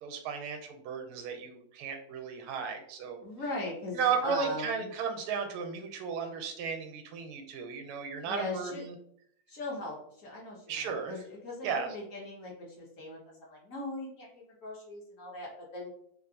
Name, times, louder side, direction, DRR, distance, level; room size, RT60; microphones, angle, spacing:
voice 1, 0.0-3.2 3.9-8.9 10.7-11.1 11.6-11.9, right 6 dB, 85° right, 5 dB, 1.4 m, -34 dB
voice 2, 3.2-4.9 8.2-8.8 9.5-15.9, left 2 dB, 65° left, -3 dB, 0.8 m, -39 dB
3.5 x 2.4 x 2.6 m, 0.67 s
omnidirectional pair, 2.3 m